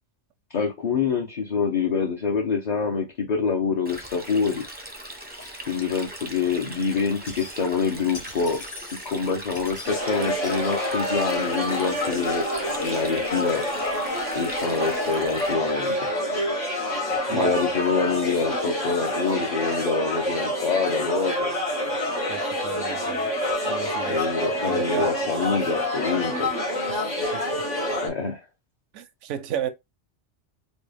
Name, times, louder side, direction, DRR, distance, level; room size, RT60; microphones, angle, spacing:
voice 1, 0.5-4.6 5.7-8.6 9.0-12.5 12.8-13.6 14.3-16.1 17.3-21.5 24.1-26.5 28.0-28.4, left 5 dB, 45° left, 0.7 m, -26 dB
Stream, 3.8-15.5, right 1 dB, 10° right, 0.5 m, -40 dB
sound 1, 5.3-6.1 7.0-7.8 8.1-9.2 9.5-10.0, left 3 dB, 60° left, 1.8 m, -43 dB
sound 2, 9.8-28.1, left 1 dB, 90° left, 2.2 m, -27 dB
voice 2, 22.3-23.3 23.6-24.2 24.7-25.1 26.9-27.6 28.9-29.7, right 10 dB, 85° right, 0.9 m, -33 dB
4.1 x 2.2 x 3.3 m
omnidirectional pair, 1.2 m